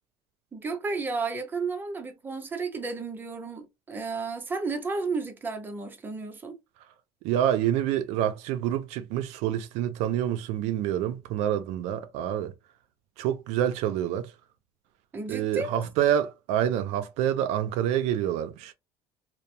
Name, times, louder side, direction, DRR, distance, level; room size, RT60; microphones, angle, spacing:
voice 1, 0.5-6.6 15.1-15.8, right 4 dB, 20° right, 0.6 m, -32 dB
voice 2, 7.2-12.5 13.2-14.3 15.3-18.7, right 11 dB, 80° right, 0.4 m, -27 dB
2.9 x 2.0 x 2.5 m
cardioid pair, 140°, 11 cm